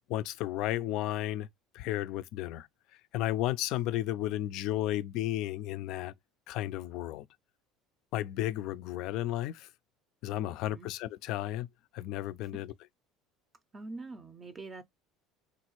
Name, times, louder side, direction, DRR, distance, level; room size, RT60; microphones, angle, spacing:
voice 1, 0.0-1.5 1.7-2.7 3.1-6.1 6.5-7.3 8.1-9.7 10.2-11.7 11.9-12.7, left 14 dB, 65° left, 0.3 m, -33 dB
voice 2, 10.5-10.9 12.5-12.6 13.7-14.8, right 3 dB, 25° right, 0.5 m, -44 dB
3.0 x 2.4 x 2.9 m
supercardioid pair, 85°, 0 cm